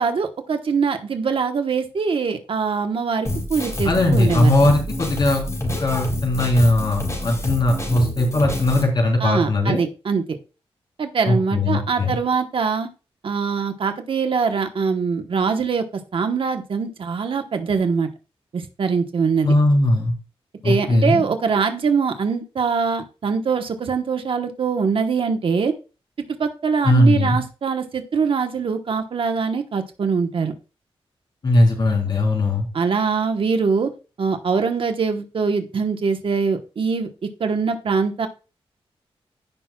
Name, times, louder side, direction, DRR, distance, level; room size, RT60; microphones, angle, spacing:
voice 1, 0.0-4.5 9.2-10.4 11.0-12.9 13.2-15.8 16.1-18.1 18.5-19.5 20.6-25.7 26.4-30.5 32.7-33.9 34.2-37.1 37.4-38.3, right 5 dB, 60° right, 6 dB, 1.1 m, -23 dB
Drum kit, 3.2-8.8, left 1 dB, 30° left, 4.4 m, -27 dB
voice 2, 3.8-5.4 5.8-9.8 11.3-12.2 19.4-20.1 20.6-21.2 26.8-27.4 31.4-32.7, left 1 dB, 50° left, 1 dB, 3.7 m, -19 dB
15.5 x 6.0 x 2.3 m, 0.32 s
wide cardioid pair, 130°, 10 cm